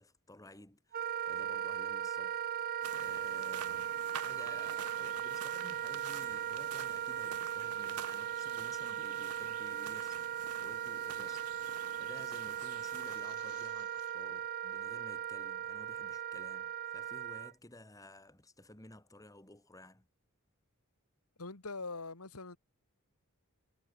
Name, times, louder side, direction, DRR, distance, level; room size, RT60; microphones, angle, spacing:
voice 1, 0.0-2.4 2.7-20.1, left 1 dB, 15° left, 3.5 m, -55 dB
Wind instrument woodwind instrument, 0.9-17.5, right 9 dB, 40° right, 0.4 m, -38 dB
sound 1, 2.8-13.7, right 8 dB, 85° right, 0.9 m, -49 dB
sound 2, 12.6-14.4, left 7 dB, 65° left, 5.8 m, -60 dB
voice 2, 21.4-22.6, left 3 dB, 85° left, 2.4 m, -42 dB
head